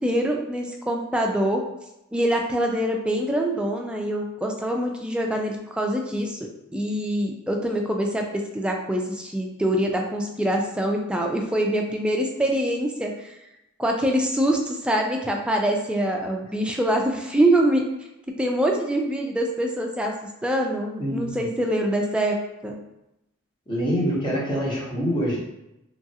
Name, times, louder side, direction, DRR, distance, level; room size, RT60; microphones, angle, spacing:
voice 1, 0.0-1.6 2.1-6.4 6.7-13.3 13.8-17.8 18.4-20.1 20.4-22.4 22.6-22.8, right 1 dB, 5° right, 1 dB, 0.3 m, -24 dB
voice 2, 21.0-21.5 23.7-25.4, equal, 20° left, -5 dB, 0.9 m, -25 dB
3.0 x 2.4 x 2.7 m, 0.88 s
head